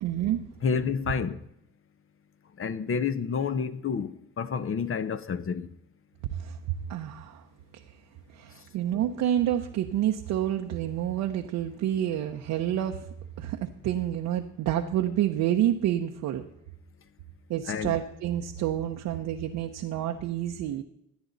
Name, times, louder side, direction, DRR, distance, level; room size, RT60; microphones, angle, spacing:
voice 1, 0.0-0.4 6.3-6.6 6.9-7.4 8.3-13.0 13.4-16.4 17.5-20.8, right 11 dB, 90° right, 0.9 m, -28 dB
voice 2, 0.6-1.4 2.6-5.7 17.7-17.9, left 6 dB, 45° left, 0.9 m, -29 dB
17.5 x 10.5 x 4.1 m
cardioid pair, 90°, 30 cm